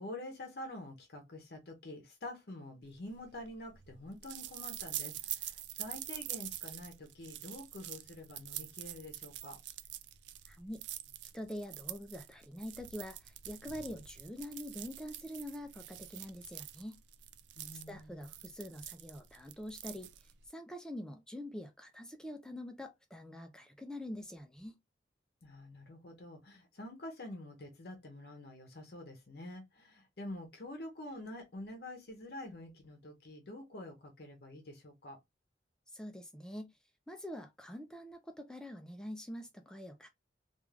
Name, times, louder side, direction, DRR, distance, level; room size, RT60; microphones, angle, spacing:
voice 1, 0.0-9.6 17.6-18.3 25.4-35.2, left 1 dB, 60° left, 0.7 m, -47 dB
sound 1, 3.0-20.5, right 13 dB, 85° right, 0.3 m, -45 dB
voice 2, 10.5-10.9 11.3-17.0 17.9-24.8 35.9-36.7 37.1-40.1, left 1 dB, 5° left, 0.3 m, -45 dB
3.1 x 2.4 x 2.3 m
head